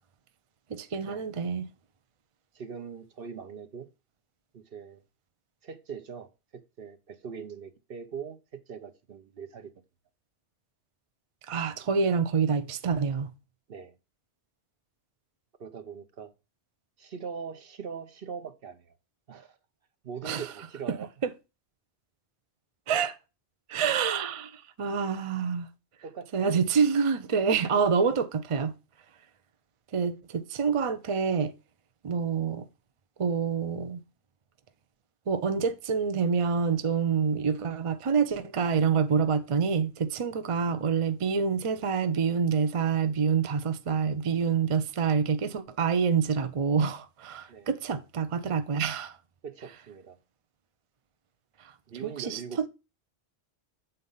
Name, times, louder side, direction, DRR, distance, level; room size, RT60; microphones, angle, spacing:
voice 1, 0.7-1.7 11.5-13.3 20.2-20.4 22.9-23.2 23.7-25.7 26.3-28.7 29.9-31.5 32.0-32.7 33.2-34.0 35.3-49.2 52.2-52.7, right 6 dB, 40° right, 0.4 m, -27 dB
voice 2, 2.5-3.9 4.5-5.0 5.6-9.7 11.8-11.9 13.7-14.0 15.6-16.3 17.0-18.9 19.3-19.6 20.0-21.1 26.0-26.5 47.5-47.7 49.4-50.2 51.9-52.7, right 6 dB, 55° right, 0.9 m, -41 dB
7.9 x 4.0 x 5.5 m
omnidirectional pair, 1.2 m